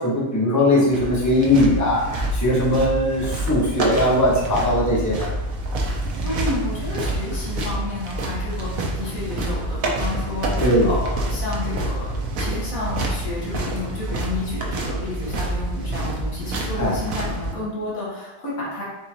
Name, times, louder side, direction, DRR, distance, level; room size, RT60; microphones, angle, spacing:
voice 1, 0.0-5.3 10.6-10.9 16.8-16.9, left 1 dB, 15° left, -5 dB, 0.9 m, -20 dB
sound 1, 0.9-17.5, right 1 dB, 90° right, 1.2 m, -27 dB
voice 2, 6.2-18.8, left 2 dB, 85° left, -6 dB, 1.8 m, -31 dB
4.5 x 3.8 x 2.9 m, 1.0 s
omnidirectional pair, 1.4 m